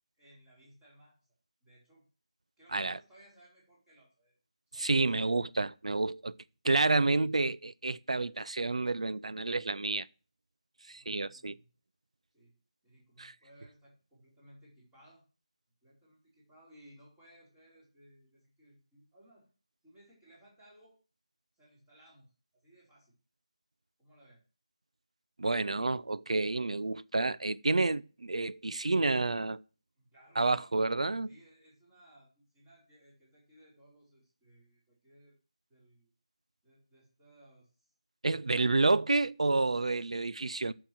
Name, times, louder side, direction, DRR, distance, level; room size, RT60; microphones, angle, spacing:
voice 1, 0.1-1.3 1.6-2.0 2.6-4.3 4.7-5.4 10.9-11.7 12.3-15.3 15.8-19.5 19.8-21.0 21.5-23.1 24.0-24.4 30.0-30.7 31.3-35.4 35.7-36.1 36.6-37.9, right 1 dB, 10° right, 4.7 m, -61 dB
voice 2, 4.8-6.4 6.6-10.1 10.9-11.6 13.2-13.3 25.4-29.6 30.4-31.3 38.2-40.7, right 3 dB, 70° right, 0.7 m, -29 dB
10.5 x 6.7 x 7.8 m
figure-of-eight pair, 170°, 3 cm